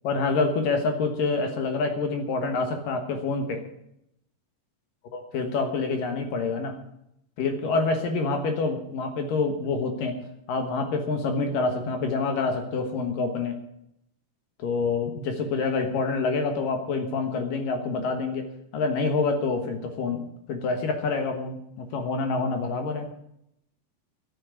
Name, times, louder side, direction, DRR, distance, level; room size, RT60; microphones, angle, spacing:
voice 1, 0.0-3.6 5.1-6.8 7.4-10.2 10.5-13.6 14.6-18.5 18.7-23.1, left 4 dB, 65° left, 5 dB, 2.7 m, -27 dB
12.0 x 8.6 x 9.5 m, 0.78 s
omnidirectional pair, 4.8 m